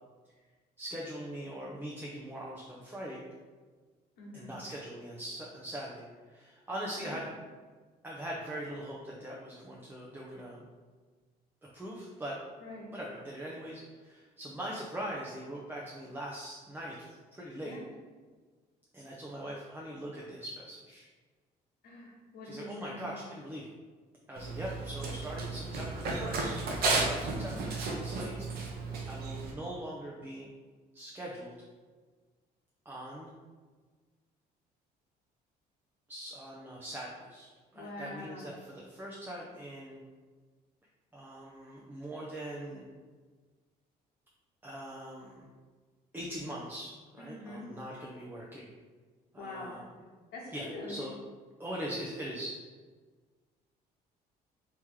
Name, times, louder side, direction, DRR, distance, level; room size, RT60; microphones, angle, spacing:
voice 1, 0.8-3.2 4.3-7.3 8.0-10.6 11.7-12.4 12.9-17.1 17.3-17.8 18.9-21.1 22.4-23.7 24.3-28.5 29.1-30.5 30.9-31.5 32.9-33.3 36.1-40.0 41.1-42.8 44.6-45.5 46.1-48.7 49.3-49.9 50.5-51.1 51.6-52.5, right 1 dB, 10° right, -4 dB, 0.5 m, -41 dB
voice 2, 4.2-4.6 7.0-7.1 12.6-12.9 17.6-17.8 21.8-23.2 27.3-27.5 37.7-38.5 47.2-47.7 49.3-49.7 50.3-51.0, left 2 dB, 70° left, -4 dB, 1.2 m, -44 dB
Run, 24.4-29.5, right 3 dB, 65° right, 0.7 m, -33 dB
3.1 x 2.9 x 3.6 m, 1.4 s
cardioid pair, 110°, 17 cm